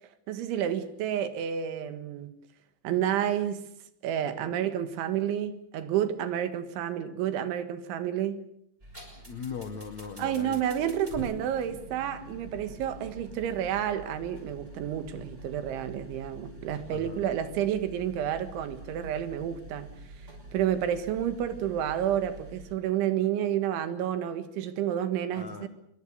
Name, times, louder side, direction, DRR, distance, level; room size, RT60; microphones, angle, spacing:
voice 1, 0.3-2.3 2.8-3.7 4.0-8.5 10.2-19.9 20.5-25.7, right 10 dB, 75° right, 3.8 m, -30 dB
sound 1, 8.8-22.7, right 1 dB, 10° right, 6.9 m, -46 dB
voice 2, 9.1-10.9 16.9-17.2 25.3-25.7, left 6 dB, 75° left, 1.6 m, -40 dB
26.0 x 23.5 x 6.7 m
omnidirectional pair, 5.7 m